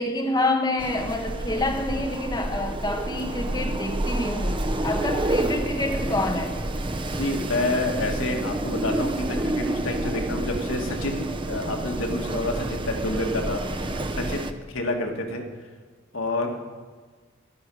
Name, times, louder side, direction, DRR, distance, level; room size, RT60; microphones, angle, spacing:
voice 1, 0.0-6.6, left 2 dB, 20° left, 1 dB, 1.3 m, -27 dB
Wind, 0.8-14.5, right 1 dB, 25° right, 0.6 m, -29 dB
voice 2, 7.2-15.4 16.1-16.7, left 2 dB, 75° left, 2 dB, 1.9 m, -29 dB
14.0 x 12.0 x 6.3 m, 1.4 s
head